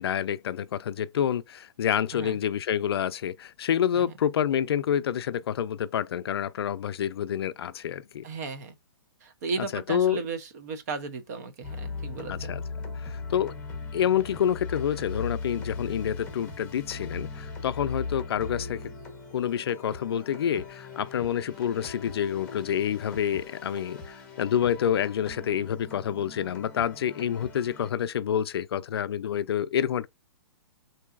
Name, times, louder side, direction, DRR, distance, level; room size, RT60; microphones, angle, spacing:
voice 1, 0.0-8.3 9.6-10.2 12.3-12.6 13.0-13.5 13.9-18.9 19.3-30.1, left 9 dB, 70° left, 0.4 m, -28 dB
voice 2, 8.2-8.7 9.2-12.5, right 4 dB, 40° right, 0.6 m, -35 dB
sound 1, 11.6-27.9, left 4 dB, 10° left, 0.9 m, -39 dB
3.8 x 2.7 x 2.4 m
hypercardioid pair, 160°, 14 cm